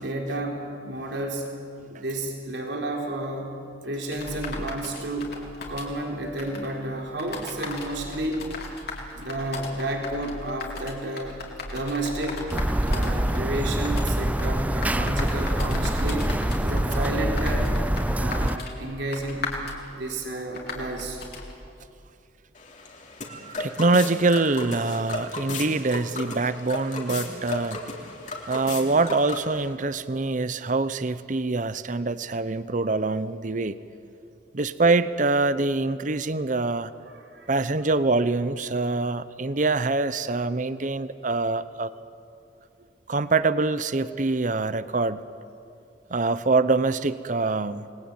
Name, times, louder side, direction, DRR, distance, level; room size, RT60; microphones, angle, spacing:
voice 1, 0.0-1.5 1.9-3.6 3.8-5.4 5.7-8.4 9.1-11.4 11.7-12.5 12.8-16.3 16.6-17.8 18.1-21.2 37.1-37.6, right 1 dB, 70° right, 1 dB, 3.9 m, -31 dB
sound 1, 4.1-21.6, left 2 dB, 60° left, 4.3 m, -38 dB
sound 2, 12.5-18.6, right 1 dB, 10° right, 0.6 m, -25 dB
sound 3, 22.6-29.7, left 3 dB, 45° left, 3.5 m, -35 dB
voice 2, 23.3-27.8 28.5-33.8 34.5-36.9 37.5-41.9 43.1-45.2 46.1-47.9, right 3 dB, 45° right, 14 dB, 0.8 m, -24 dB
29.0 x 21.5 x 9.0 m, 2.5 s
head